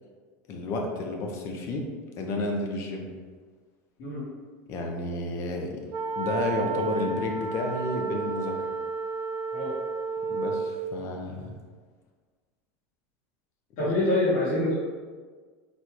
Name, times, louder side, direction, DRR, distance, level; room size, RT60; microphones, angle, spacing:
voice 1, 0.5-1.9 2.2-3.1 4.7-5.9 6.2-8.6 10.3-11.5 13.8-14.0, left 2 dB, 40° left, 2 dB, 0.7 m, -31 dB
sound 1, 5.9-10.8, right 4 dB, 35° right, 0.5 m, -31 dB
voice 2, 13.8-14.7, left 2 dB, 60° left, -11 dB, 1.5 m, -25 dB
4.2 x 2.3 x 4.6 m, 1.5 s
supercardioid pair, 145°, 7 cm